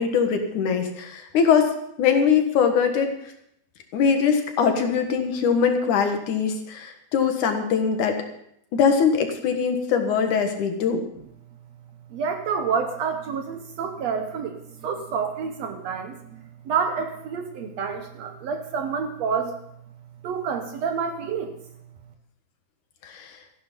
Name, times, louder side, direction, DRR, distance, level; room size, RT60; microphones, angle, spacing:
voice 1, 0.0-3.3 3.9-8.2 8.7-11.0 23.0-23.4, left 6 dB, 80° left, 5 dB, 3.1 m, -22 dB
voice 2, 12.1-19.5 20.2-21.6, right 6 dB, 65° right, 5 dB, 2.0 m, -28 dB
14.5 x 11.5 x 5.4 m, 0.75 s
omnidirectional pair, 3.5 m